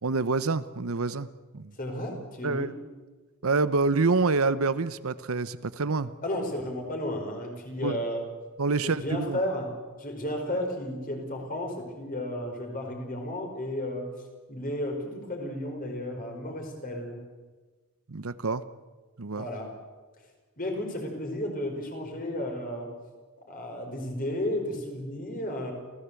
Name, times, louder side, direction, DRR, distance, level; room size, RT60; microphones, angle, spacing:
voice 1, 0.0-1.3 1.5-1.7 2.4-2.7 3.4-6.1 7.8-8.0 8.6-9.4 18.1-18.6 19.2-19.4, right 3 dB, 75° right, 14 dB, 0.8 m, -27 dB
voice 2, 1.8-2.7 6.2-8.2 8.8-9.7 10.0-14.1 14.5-17.2 19.4-19.7 20.6-22.9 23.5-25.7, left 1 dB, 40° left, 2 dB, 5.0 m, -33 dB
28.0 x 16.0 x 8.3 m, 1.3 s
head